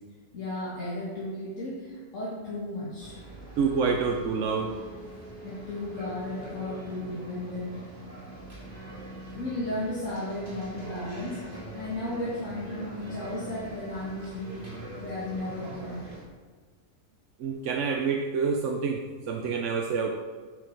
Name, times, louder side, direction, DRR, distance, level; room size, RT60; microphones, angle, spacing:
voice 1, 0.3-3.2 5.4-7.8 9.3-14.6 15.0-16.0, left 1 dB, 80° left, -8 dB, 2.1 m, -34 dB
sound 1, 3.0-16.2, right 1 dB, 45° right, 2.4 m, -43 dB
voice 2, 3.6-4.7 17.4-20.1, right 5 dB, 75° right, 2 dB, 1.0 m, -27 dB
Telephone, 3.8-6.9 7.3-7.4, right 2 dB, ahead, 0.5 m, -46 dB
8.3 x 6.2 x 4.5 m, 1.5 s
omnidirectional pair, 1.3 m